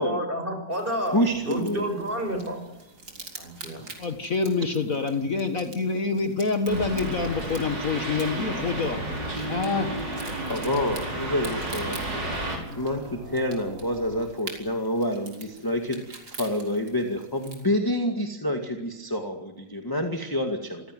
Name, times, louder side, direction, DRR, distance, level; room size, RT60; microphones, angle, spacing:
voice 1, 0.0-2.6 3.4-3.8, equal, 30° right, 6 dB, 6.1 m, -30 dB
sound 1, 0.7-17.7, right 3 dB, 65° right, 4.6 m, -46 dB
voice 2, 1.1-1.9 10.5-12.3 12.8-16.0 16.4-20.6, left 1 dB, 10° left, 3 dB, 2.0 m, -27 dB
voice 3, 4.0-9.1 9.5-9.9, left 4 dB, 50° left, 7 dB, 1.8 m, -26 dB
sound 2, 6.7-12.6, right 1 dB, 80° right, 6.8 m, -32 dB
sound 3, 8.7-14.3, right 2 dB, 50° right, 3.4 m, -44 dB
27.0 x 16.0 x 9.3 m, 0.92 s
omnidirectional pair, 1.9 m